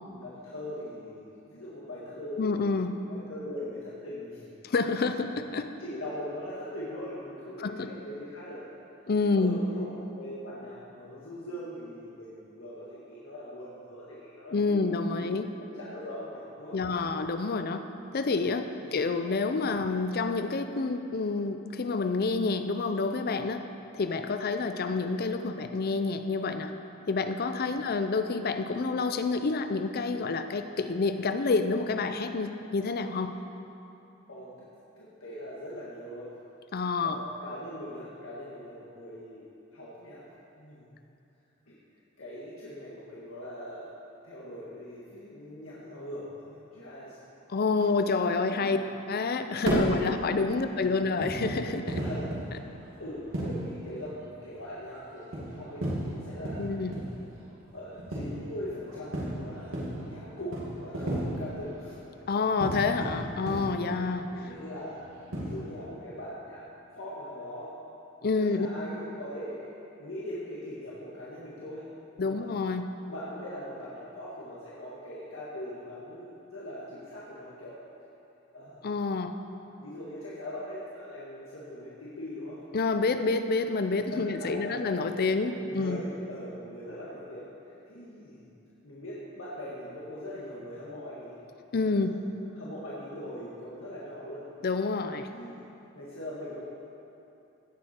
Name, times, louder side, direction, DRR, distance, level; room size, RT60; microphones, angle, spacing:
voice 1, 0.0-4.5 5.0-5.4 5.8-8.6 9.4-14.9 15.2-15.3 15.6-17.1 18.8-18.9 34.3-34.7 35.0-36.4 37.0-40.2 40.6-41.0 41.7-41.8 42.2-43.9 44.2-47.2 48.3-48.8 50.0-50.2 50.5-50.9 52.0-52.7 53.0-56.7 57.7-62.0 63.8-64.1 64.3-65.0 65.3-66.7 66.9-67.8 68.4-71.8 72.1-72.6 73.1-77.8 78.5-78.8 79.8-82.6 84.1-88.5 88.8-91.4 91.7-92.3 92.5-94.4 95.3-95.6 95.9-96.7, left 1 dB, 90° left, -8 dB, 1.7 m, -41 dB
voice 2, 2.4-3.0 4.6-5.7 7.6-7.9 9.1-9.6 14.5-15.5 16.7-17.9 18.1-23.6 23.9-26.7 27.1-33.4 36.7-37.2 47.5-48.8 49.1-52.0 56.6-56.9 62.3-64.3 68.2-68.7 72.2-72.9 78.8-79.3 82.7-86.0 91.7-92.2 94.6-95.3, left 4 dB, 50° left, 8 dB, 0.5 m, -28 dB
sound 1, 49.5-65.7, right 1 dB, 90° right, 2.4 m, -35 dB
16.5 x 7.8 x 4.4 m, 2.9 s
head